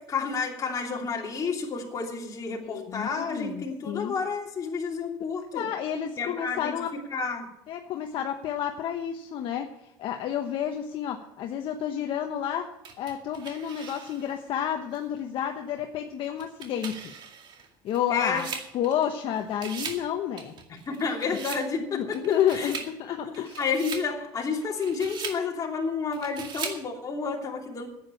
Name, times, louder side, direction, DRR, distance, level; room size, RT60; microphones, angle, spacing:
voice 1, 0.0-5.6 6.2-6.7 7.1-7.5 18.1-18.4 20.9-22.2 22.5-22.7 23.6-27.9, left 5 dB, 35° left, 0 dB, 2.9 m, -30 dB
voice 2, 2.7-4.2 5.5-6.9 7.7-12.7 13.0-17.1 17.8-18.5 18.7-20.5 21.9-23.6, left 9 dB, 55° left, 4 dB, 1.1 m, -30 dB
sound 1, 12.8-14.4 14.9-15.0 16.2-19.2 19.5-20.1 20.4-21.7 22.1-22.9 23.3-24.1 24.6-25.4 26.1-26.8, right 6 dB, 50° right, 2.2 m, -39 dB
10.5 x 9.0 x 8.4 m, 0.82 s
cardioid pair, 115°, 10 cm